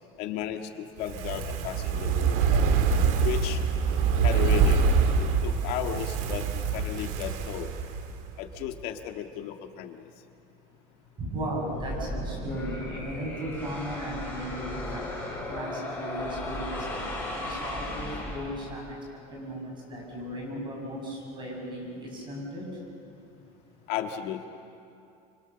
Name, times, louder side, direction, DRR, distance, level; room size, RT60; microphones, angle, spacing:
voice 1, 0.2-2.6 3.2-3.6 4.2-4.9 5.2-7.7 8.4-10.1 23.9-24.5, left 10 dB, 60° left, 5 dB, 1.8 m, -34 dB
Fire, 1.0-8.3 8.6-8.7, right 5 dB, 70° right, 2.0 m, -25 dB
voice 2, 11.2-15.0 15.5-16.8 17.3-19.0 19.3-22.6, equal, 25° right, -1 dB, 6.8 m, -36 dB
sound 1, 11.6-18.9, left 1 dB, 10° left, 6.3 m, -36 dB
26.0 x 24.5 x 6.9 m, 2.6 s
cardioid pair, 165°, 18 cm